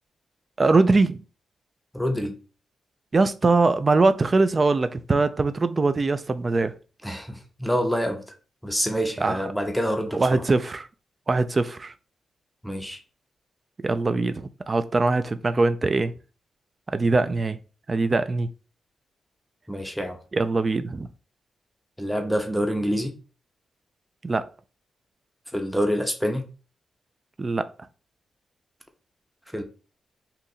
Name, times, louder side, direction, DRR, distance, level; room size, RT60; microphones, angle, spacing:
voice 1, 0.6-1.2 3.1-6.7 9.2-9.4 10.1-10.9 11.3-11.9 13.8-16.1 16.9-17.6 17.9-18.5 20.3-21.1 24.2-24.5 27.4-27.7, right 3 dB, 35° right, 0.3 m, -22 dB
voice 2, 1.9-2.4 7.0-8.2 8.6-10.4 12.6-13.0 19.7-20.2 22.0-23.2 25.5-26.5 29.5-29.6, equal, ahead, 0.7 m, -26 dB
2.8 x 2.5 x 3.9 m
cardioid pair, 65°, 0 cm